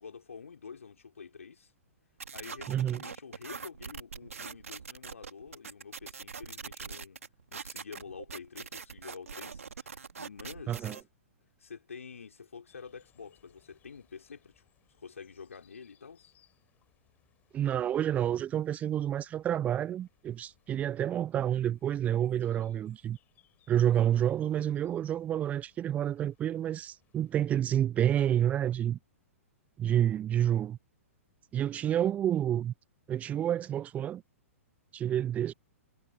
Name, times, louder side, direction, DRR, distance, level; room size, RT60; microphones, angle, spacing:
voice 1, 0.0-1.7 2.3-7.2 7.5-11.0 11.6-14.6 15.0-16.3, left 5 dB, 70° left, 5.6 m, -48 dB
sound 1, 2.2-11.0, right 5 dB, 70° right, 2.5 m, -43 dB
voice 2, 2.7-3.0 10.7-11.0 17.5-23.2 23.7-29.0 29.8-30.8 31.5-32.7 33.1-34.2 34.9-35.5, right 10 dB, 20° right, 0.6 m, -29 dB
sound 2, 12.7-27.6, left 11 dB, 20° left, 6.4 m, -70 dB
figure-of-eight pair, 110°, 8 cm